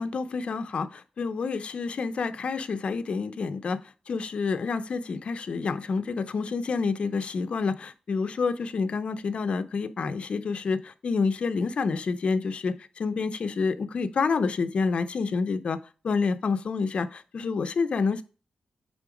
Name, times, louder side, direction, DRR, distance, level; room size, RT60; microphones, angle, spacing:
voice 1, 0.0-3.8 4.1-15.8 16.0-18.2, left 4 dB, 55° left, 11 dB, 0.7 m, -28 dB
8.7 x 3.8 x 5.0 m, 0.36 s
wide cardioid pair, 125°, 2 cm